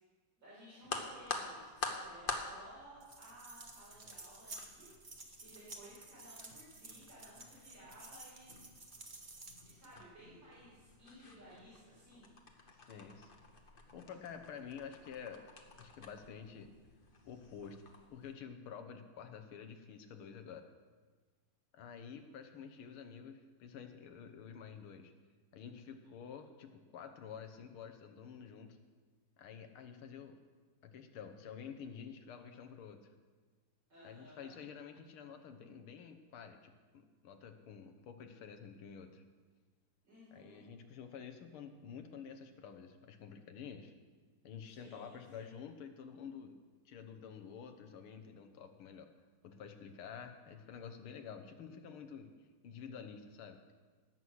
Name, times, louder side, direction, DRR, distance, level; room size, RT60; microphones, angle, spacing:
voice 1, 0.4-4.9 5.4-8.8 9.7-12.3 33.9-34.6 40.0-40.6 44.6-45.6, equal, 65° right, -10 dB, 5.4 m, -57 dB
sound 1, 0.8-18.3, left 3 dB, 30° left, 1.1 m, -48 dB
sound 2, 3.0-9.9, right 3 dB, 30° right, 1.1 m, -53 dB
voice 2, 12.8-13.3 13.9-15.4 15.8-16.7 17.2-17.8 18.1-20.7 21.7-25.1 25.5-28.8 29.4-30.4 30.8-33.1 34.0-39.2 40.3-43.9 44.4-46.6 46.9-49.1 49.4-52.3 52.6-53.6, left 7 dB, 85° left, 7 dB, 1.9 m, -49 dB
18.5 x 7.8 x 6.3 m, 1.4 s
omnidirectional pair, 2.3 m